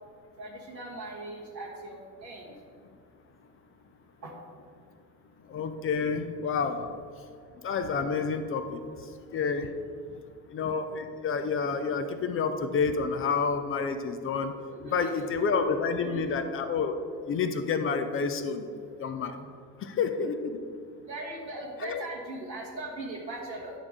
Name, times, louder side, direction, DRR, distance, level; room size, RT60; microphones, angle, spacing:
voice 1, 0.4-2.5 4.2-4.3 14.5-15.6 16.0-16.3 21.1-23.7, right 2 dB, 85° right, -2 dB, 1.5 m, -39 dB
voice 2, 5.5-6.9 7.6-8.8 9.3-9.7 10.5-14.5 14.8-17.0 17.3-18.6 19.0-19.3 19.8-20.6 21.8-22.0, left 5 dB, 25° left, 8 dB, 0.5 m, -29 dB
10.5 x 3.5 x 6.3 m, 2.3 s
figure-of-eight pair, 60°, 50 cm